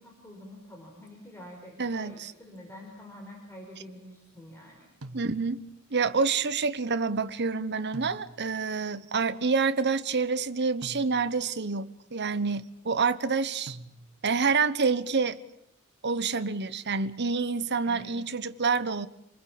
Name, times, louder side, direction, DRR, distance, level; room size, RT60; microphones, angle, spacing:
voice 1, 0.0-4.9 17.8-18.3, left 1 dB, 10° left, 5.1 m, -47 dB
voice 2, 1.8-2.3 5.1-13.8 14.2-15.4 16.0-19.1, right 4 dB, 50° right, 1.2 m, -28 dB
sound 1, 5.0-5.8 7.9-8.7 10.8-11.6 13.7-14.4, right 1 dB, 85° right, 1.7 m, -46 dB
28.0 x 20.5 x 8.9 m
head